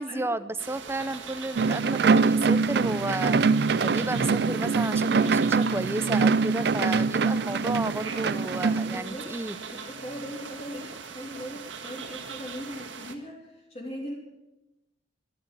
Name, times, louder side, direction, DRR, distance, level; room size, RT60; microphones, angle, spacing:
voice 1, 0.0-9.6, right 2 dB, 15° right, 14 dB, 0.5 m, -32 dB
sound 1, 0.6-13.1, right 5 dB, 85° right, 1.7 m, -41 dB
sound 2, 1.6-9.0, right 4 dB, 60° right, 0.4 m, -24 dB
voice 2, 8.9-9.3 9.7-14.1, equal, 35° left, -1 dB, 3.2 m, -39 dB
13.0 x 12.5 x 8.7 m, 0.99 s
head